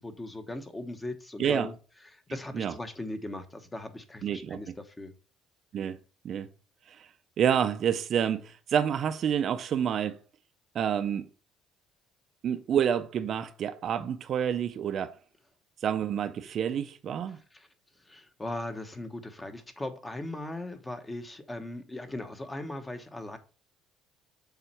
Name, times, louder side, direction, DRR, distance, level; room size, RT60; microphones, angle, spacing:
voice 1, 0.0-1.8 2.1-5.1 17.3-17.7 18.0-23.4, left 1 dB, 15° left, 1.0 m, -39 dB
voice 2, 4.2-4.6 5.7-6.0 6.2-6.5 7.4-10.2 10.7-11.3 12.4-15.2 15.8-17.4, right 8 dB, 50° right, 0.6 m, -28 dB
7.0 x 4.4 x 4.4 m
cardioid pair, 120°, 0 cm